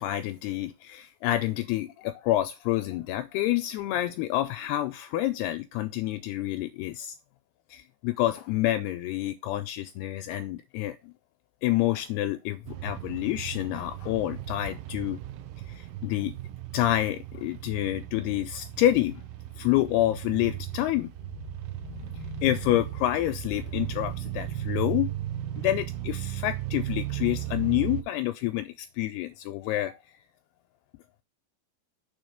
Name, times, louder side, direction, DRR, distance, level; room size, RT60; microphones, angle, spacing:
voice 1, 0.0-7.2 7.7-11.1 11.6-15.2 15.7-16.3 16.7-19.2 19.6-25.1 25.6-29.9, left 14 dB, 85° left, 2.4 m, -28 dB
sound 1, 12.7-28.0, right 15 dB, 80° right, 2.8 m, -36 dB
7.0 x 3.7 x 5.1 m
omnidirectional pair, 4.9 m